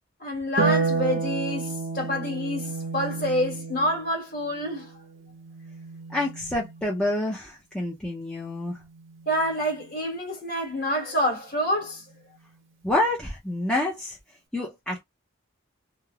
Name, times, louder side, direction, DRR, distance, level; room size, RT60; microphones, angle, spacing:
voice 1, 0.2-4.9 9.3-12.0, equal, 45° left, 1.3 m, -27 dB
Harp, 0.6-7.1 8.7-9.7, right 4 dB, 75° right, 0.8 m, -31 dB
voice 2, 6.1-8.8 12.8-14.2 14.5-15.0, left 1 dB, 5° left, 0.5 m, -28 dB
3.1 x 2.0 x 2.3 m
head